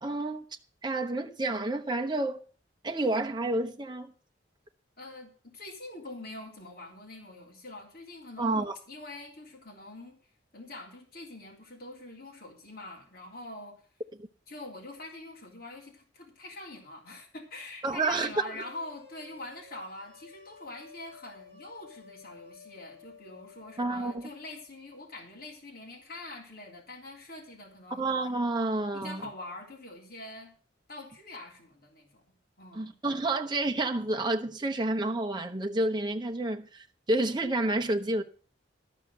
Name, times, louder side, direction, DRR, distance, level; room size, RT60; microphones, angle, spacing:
voice 1, 0.0-0.4 0.8-2.4 2.8-4.1 8.4-8.8 17.8-18.3 23.8-24.3 28.0-29.2 32.7-38.2, right 2 dB, 25° right, 1.0 m, -29 dB
voice 2, 5.0-10.2 10.5-13.9 14.5-28.0 28.9-30.5 30.9-32.2 32.6-33.0, left 2 dB, 50° left, 3.4 m, -44 dB
sound 1, 18.5-24.7, left 6 dB, 30° left, 6.8 m, -53 dB
13.5 x 6.0 x 7.9 m
head